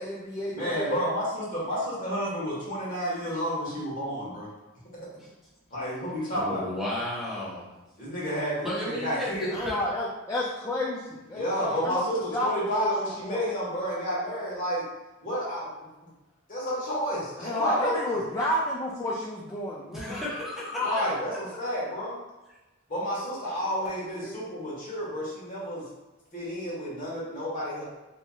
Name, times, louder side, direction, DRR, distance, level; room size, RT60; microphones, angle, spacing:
voice 1, 0.0-1.0 9.4-13.4 17.4-20.2 20.7-21.2 23.8-23.9 24.2-24.3, left 1 dB, 15° left, -4 dB, 0.4 m, -31 dB
voice 2, 0.5-4.5 5.7-6.7 8.0-9.5 11.3-14.8 15.2-15.7 16.5-18.2 20.8-22.2 22.9-25.8 26.3-27.8, equal, 40° left, -7 dB, 1.4 m, -30 dB
voice 3, 6.2-7.7 8.6-9.8 19.9-20.9, left 1 dB, ahead, -9 dB, 1.0 m, -33 dB
4.3 x 2.9 x 2.3 m, 1.1 s
head